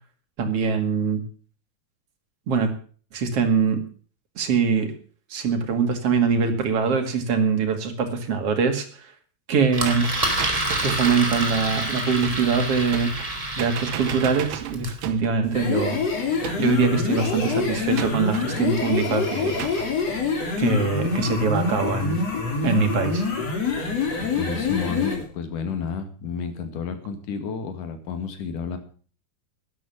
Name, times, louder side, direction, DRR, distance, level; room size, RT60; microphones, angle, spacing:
voice 1, 0.4-1.2 2.5-2.7 3.1-3.8 4.4-4.9 5.3-9.1 9.5-10.1 10.8-13.2 13.6-16.0 16.6-19.6 20.6-22.2 22.6-23.2, right 5 dB, 45° right, 5 dB, 2.8 m, -23 dB
Engine, 9.7-15.0, right 1 dB, 10° right, 2.7 m, -28 dB
sound 1, 9.8-11.3 12.2-12.5 12.9-13.3 13.6-15.4 16.4-16.9 18.0-18.5 19.6-19.9, right 12 dB, 75° right, 2.5 m, -35 dB
sound 2, 15.4-25.2, left 4 dB, 45° left, 4.1 m, -26 dB
voice 2, 23.8-28.8, left 6 dB, 65° left, 8 dB, 3.4 m, -31 dB
12.0 x 11.0 x 7.1 m, 0.42 s
omnidirectional pair, 4.2 m